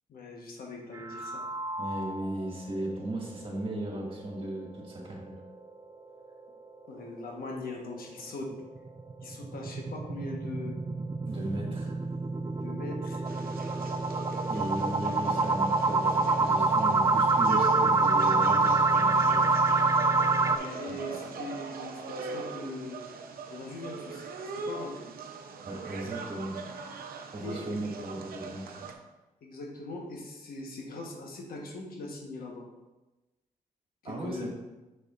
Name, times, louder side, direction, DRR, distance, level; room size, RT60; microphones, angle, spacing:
voice 1, 0.1-1.4 6.9-8.5 9.2-10.8 12.5-13.2 20.5-23.0 23.5-25.1 27.4-27.7 29.4-32.7 34.0-34.5, left 2 dB, 75° left, 0 dB, 1.3 m, -41 dB
sound 1, 0.9-2.4 2.8-2.9 3.3-3.4 3.8-3.9 8.8-20.6, right 3 dB, 20° right, 0.4 m, -26 dB
voice 2, 1.8-5.4 11.2-11.9 14.5-19.5 20.9-21.0 25.6-26.6 27.3-28.9 34.0-34.5, right 1 dB, 35° right, -2 dB, 2.0 m, -36 dB
sound 2, 13.2-28.9, right 5 dB, 80° right, 0.7 m, -40 dB
6.7 x 6.6 x 2.5 m, 1.1 s
cardioid pair, 75°, 15 cm